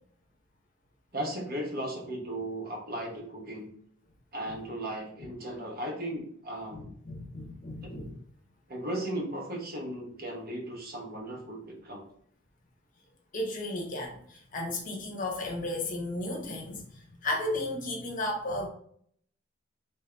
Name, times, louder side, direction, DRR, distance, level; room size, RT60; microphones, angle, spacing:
voice 1, 1.1-3.7 4.3-6.9 7.8-7.9 8.7-12.0, right 1 dB, 50° right, -1 dB, 1.1 m, -36 dB
voice 2, 6.7-8.1 13.3-18.7, left 1 dB, 40° left, 0 dB, 0.8 m, -34 dB
3.5 x 2.7 x 3.3 m, 0.63 s
head